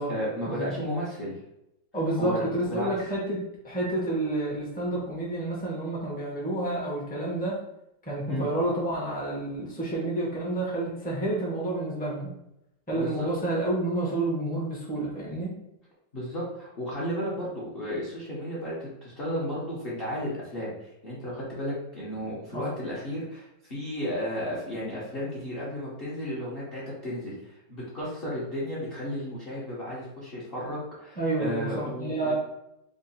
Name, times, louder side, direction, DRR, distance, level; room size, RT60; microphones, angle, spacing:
voice 1, 0.1-1.3 2.2-2.9 8.3-8.5 12.9-13.3 16.1-32.3, equal, 50° left, -7 dB, 0.7 m, -33 dB
voice 2, 1.9-7.6 8.1-12.3 12.9-15.5 22.5-22.7 31.2-32.3, right 2 dB, 15° left, -5 dB, 0.3 m, -29 dB
3.6 x 2.1 x 4.0 m, 0.84 s
omnidirectional pair, 2.0 m